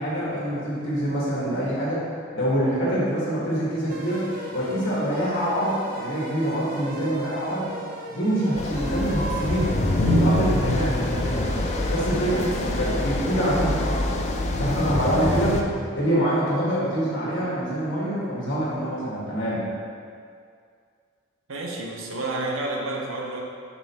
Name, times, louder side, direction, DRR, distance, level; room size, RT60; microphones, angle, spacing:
voice 1, 0.0-2.0 2.3-7.7 8.1-9.7 10.0-11.4 11.9-14.1 14.6-15.6 15.9-19.7, equal, 60° left, -7 dB, 1.5 m, -25 dB
sound 1, 3.9-13.7, left 1 dB, 45° right, 0.8 m, -37 dB
sound 2, 8.6-15.6, left 1 dB, 35° left, 0.4 m, -25 dB
voice 2, 21.5-23.4, right 2 dB, 75° right, -1 dB, 0.9 m, -30 dB
6.7 x 5.4 x 2.9 m, 2.2 s
head